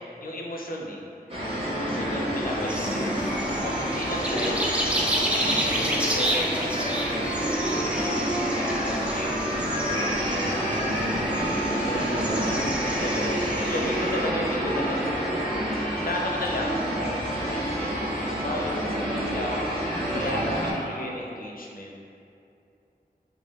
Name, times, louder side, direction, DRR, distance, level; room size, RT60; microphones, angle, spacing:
voice 1, 0.2-1.0 1.7-4.6 5.3-11.9 12.8-15.1 16.0-19.6 20.1-22.0, left 1 dB, 60° left, -1 dB, 0.4 m, -34 dB
sound 1, 1.3-20.7, equal, 35° right, 0.7 m, -28 dB
voice 2, 2.2-2.9 10.4-11.3 11.9-13.3 20.2-21.0, right 1 dB, 85° right, -5 dB, 0.4 m, -35 dB
sound 2, 2.7-14.2, equal, 5° right, 0.4 m, -31 dB
3.1 x 2.2 x 2.9 m, 2.6 s
wide cardioid pair, 55°, 17 cm